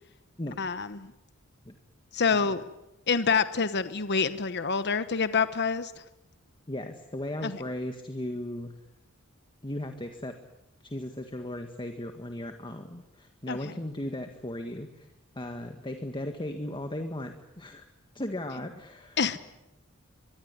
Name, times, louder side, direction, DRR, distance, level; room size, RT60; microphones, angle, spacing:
voice 1, 0.6-1.1 2.1-2.6 3.1-5.9 7.4-7.6 13.5-13.7 19.2-19.4, left 5 dB, 55° left, 1.1 m, -27 dB
voice 2, 6.7-8.7 9.6-10.3 10.8-15.1 15.3-17.8 18.1-19.4, left 1 dB, 25° left, 1.7 m, -36 dB
24.0 x 23.0 x 9.8 m
head